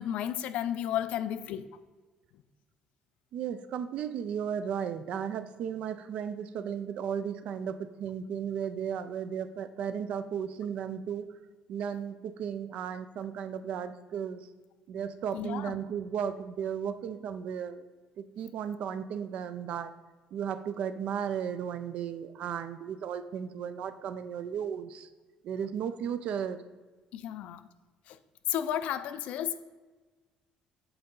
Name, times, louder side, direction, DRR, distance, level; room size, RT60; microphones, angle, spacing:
voice 1, 0.0-1.7 15.3-15.8 27.1-27.6 28.1-28.2 28.5-29.6, left 10 dB, 65° left, 12 dB, 0.4 m, -33 dB
voice 2, 3.3-11.3 11.7-14.5 14.9-17.8 18.2-19.9 20.3-25.1 25.4-26.6, right 8 dB, 55° right, 12 dB, 0.4 m, -35 dB
7.8 x 4.0 x 3.7 m, 1.3 s
cardioid pair, 160°, 2 cm